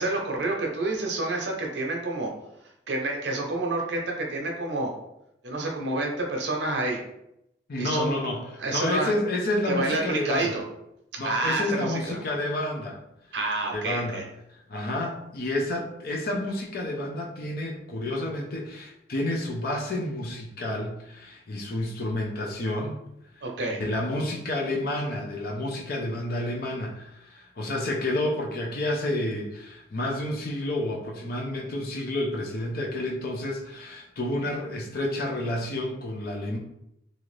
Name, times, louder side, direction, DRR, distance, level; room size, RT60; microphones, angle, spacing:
voice 1, 0.0-2.3 2.9-4.9 5.4-7.0 7.8-8.2 8.6-9.1 9.6-10.6 11.2-12.2 13.3-14.2 23.4-23.8, right 2 dB, 65° right, 0 dB, 0.7 m, -28 dB
voice 2, 7.7-8.4 8.7-10.6 11.2-13.0 13.7-14.2 14.7-23.0 23.8-36.6, left 1 dB, 50° left, -1 dB, 0.5 m, -30 dB
2.7 x 2.5 x 3.1 m, 0.82 s
head